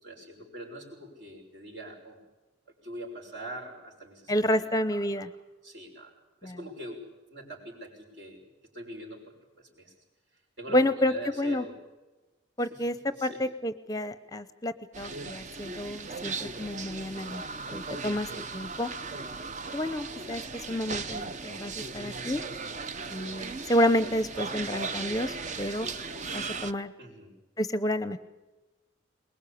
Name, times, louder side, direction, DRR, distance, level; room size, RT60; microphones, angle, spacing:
voice 1, 0.0-2.2 2.8-5.1 5.6-6.1 6.4-8.4 8.7-9.9 10.6-11.8 12.7-12.8 13.1-13.4 27.0-27.3, right 1 dB, 65° right, 0 dB, 6.0 m, -43 dB
voice 2, 4.3-5.3 6.4-6.6 10.7-11.6 12.6-13.0 13.2-17.4 17.7-18.9 19.7-22.4 23.1-25.9 26.3-26.9 27.6-28.2, left 1 dB, 20° left, 12 dB, 0.7 m, -29 dB
sound 1, 14.9-26.7, right 4 dB, 40° right, 0.7 m, -37 dB
23.0 x 20.5 x 8.5 m, 1.1 s
head